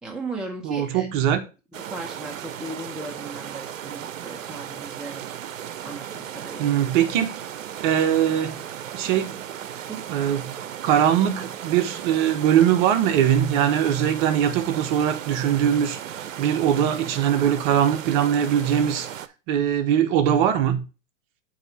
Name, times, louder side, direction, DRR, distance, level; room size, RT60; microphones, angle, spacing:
voice 1, 0.0-1.1 1.7-5.2 5.8-6.7 9.9-10.1, right 2 dB, ahead, 0.6 m, -37 dB
voice 2, 0.6-1.4 6.6-7.3 7.8-8.6 8.9-9.4 10.1-10.5 10.8-19.1 19.5-20.8, right 9 dB, 40° right, 0.9 m, -21 dB
sound 1, 1.7-19.3, right 10 dB, 80° right, 0.6 m, -36 dB
7.8 x 2.9 x 5.3 m
hypercardioid pair, 120°, 39 cm